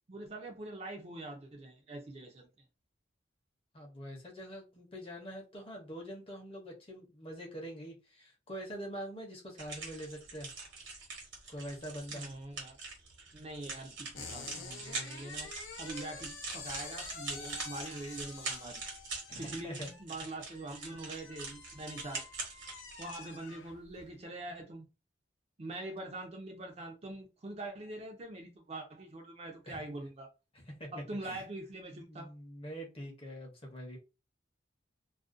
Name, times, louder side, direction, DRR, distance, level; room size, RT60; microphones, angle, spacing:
voice 1, 0.1-2.5 12.1-12.8 13.3-15.5 15.8-18.8 19.4-22.2 23.0-24.9 25.6-30.3 30.9-32.3, right 2 dB, 30° right, 0.4 m, -44 dB
voice 2, 3.7-10.5 11.5-12.3 19.3-19.9 29.7-29.8 30.5-30.9 31.2-31.4 31.9-34.0, equal, 30° left, 0.7 m, -44 dB
sound 1, 9.6-23.2, right 4 dB, 70° right, 1.0 m, -43 dB
sound 2, 14.1-24.1, left 4 dB, 85° left, 0.7 m, -48 dB
2.4 x 2.1 x 2.5 m
head